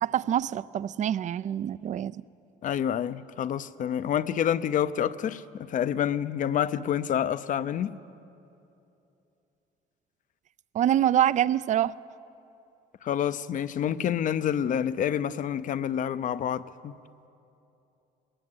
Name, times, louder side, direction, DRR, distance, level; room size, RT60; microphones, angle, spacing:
voice 1, 0.0-2.2 10.7-11.9, right 11 dB, 45° right, 19 dB, 0.4 m, -25 dB
voice 2, 2.6-7.9 13.0-16.9, left 9 dB, 50° left, 15 dB, 0.6 m, -28 dB
20.0 x 17.5 x 7.9 m, 2.8 s
cardioid pair, 110°, 17 cm